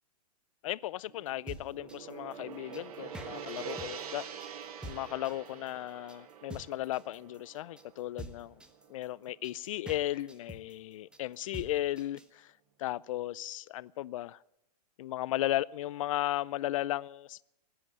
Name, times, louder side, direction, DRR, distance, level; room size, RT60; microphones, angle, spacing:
voice 1, 0.6-4.3 4.9-8.6 8.9-12.5 12.8-14.4 15.0-17.4, left 14 dB, 55° left, 0.5 m, -35 dB
Gong, 1.1-9.4, right 7 dB, 60° right, 1.7 m, -46 dB
sound 1, 1.3-12.3, right 1 dB, 5° right, 0.9 m, -47 dB
19.0 x 7.9 x 9.2 m
hypercardioid pair, 140°, 21 cm